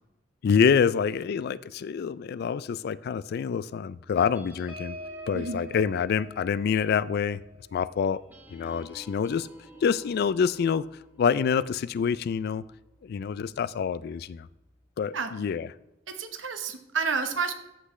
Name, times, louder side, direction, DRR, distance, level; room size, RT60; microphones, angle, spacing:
voice 1, 0.4-5.0 5.3-7.4 7.7-8.2 8.5-9.5 9.8-10.9 11.2-12.6 13.0-14.5 15.0-15.7, left 6 dB, 55° left, 18 dB, 0.3 m, -26 dB
sound 1, 4.3-13.3 13.7-13.9 14.2-14.5, left 1 dB, 10° right, 1.8 m, -47 dB
voice 2, 16.1-17.5, right 5 dB, 90° right, 8 dB, 1.0 m, -30 dB
13.5 x 5.9 x 3.1 m, 0.90 s
head